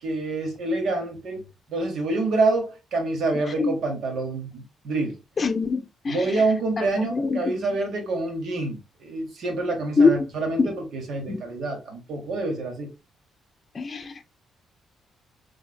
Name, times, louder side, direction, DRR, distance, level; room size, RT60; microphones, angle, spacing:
voice 1, 0.0-1.4 1.7-5.2 6.1-12.9, right 2 dB, 70° right, 1.3 m, -27 dB
voice 2, 5.4-6.2 6.8-7.5 10.0-10.1 10.6-10.7 11.3-11.4 13.7-14.2, left 4 dB, 35° left, 0.6 m, -23 dB
3.4 x 3.1 x 2.3 m
cardioid pair, 90°, 0 cm